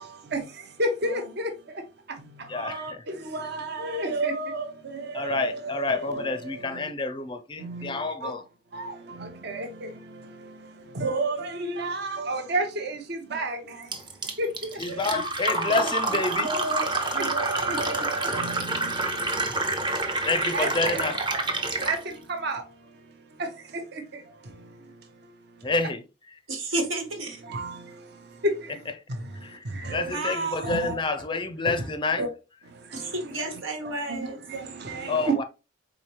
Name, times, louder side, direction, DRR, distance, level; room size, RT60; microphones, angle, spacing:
voice 1, 0.0-6.9 7.6-8.3 8.7-14.0 14.4-15.1 15.7-15.9 16.4-20.3 20.5-21.1 21.6-23.1 23.4-25.7 27.4-28.8 29.1-30.1 30.6-31.0 31.8-31.9 32.2-32.3 32.7-33.1 34.1-35.3, right 2 dB, 55° right, 0.8 m, -33 dB
voice 2, 2.5-3.0 5.1-8.4 14.8-16.5 20.3-21.1 25.6-26.4 29.4-32.3 35.1-35.4, left 3 dB, 25° left, 0.4 m, -28 dB
Fill (with liquid), 13.9-22.0, right 2 dB, 25° right, 0.7 m, -28 dB
voice 3, 26.5-27.4 30.1-30.7 32.9-34.4, right 2 dB, 80° right, 1.6 m, -31 dB
4.7 x 3.9 x 2.9 m
head